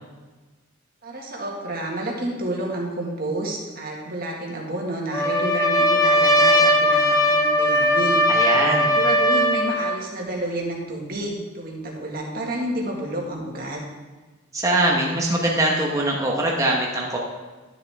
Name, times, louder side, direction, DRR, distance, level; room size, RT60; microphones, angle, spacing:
voice 1, 1.0-8.2 8.9-13.8, right 1 dB, 45° right, -1 dB, 1.8 m, -30 dB
Trumpet, 5.1-10.0, equal, 15° left, 1.0 m, -19 dB
voice 2, 8.3-8.9 14.5-17.2, right 1 dB, 15° right, -2 dB, 1.1 m, -22 dB
12.5 x 7.3 x 3.6 m, 1.3 s
head